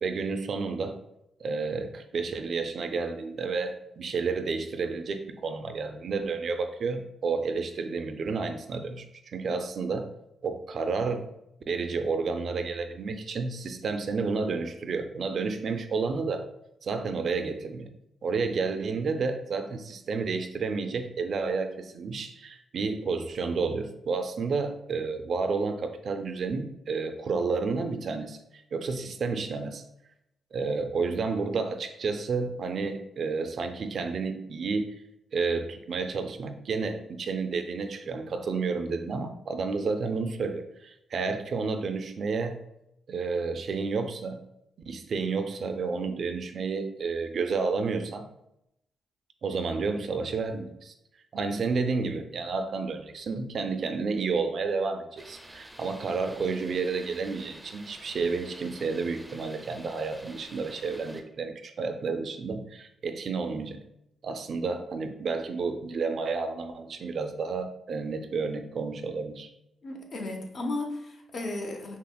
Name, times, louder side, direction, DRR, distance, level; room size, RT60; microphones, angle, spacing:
voice 1, 0.0-1.0 1.4-10.1 10.4-11.3 11.7-16.5 16.8-17.9 18.2-29.8 30.5-34.9 35.3-42.6 43.1-44.4 44.9-48.3 49.4-50.9 51.3-63.8 64.2-69.5, right 4 dB, 60° right, 8 dB, 0.3 m, -31 dB
sound 1, 55.2-61.2, right 1 dB, 5° right, 0.5 m, -49 dB
voice 2, 69.8-72.0, left 2 dB, 60° left, 2 dB, 0.7 m, -34 dB
5.4 x 2.0 x 2.2 m, 0.81 s
supercardioid pair, 55°, 0 cm